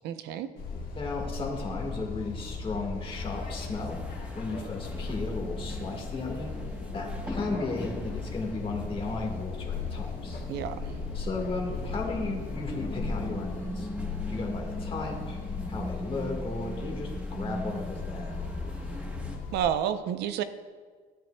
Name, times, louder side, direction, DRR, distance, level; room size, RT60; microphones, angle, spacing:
voice 1, 0.0-0.5 10.5-10.9 19.5-20.4, right 9 dB, 80° right, 11 dB, 0.6 m, -30 dB
sound 1, 0.6-19.7, left 4 dB, 60° left, 1.5 m, -37 dB
voice 2, 0.9-4.0 4.3-6.5 6.9-10.4 11.1-13.9 14.3-15.4 15.7-18.4, left 3 dB, 30° left, -1 dB, 1.5 m, -35 dB
sound 2, 3.1-19.4, equal, 5° right, 1.1 m, -41 dB
13.5 x 9.3 x 2.2 m, 1.5 s
cardioid pair, 110°, 17 cm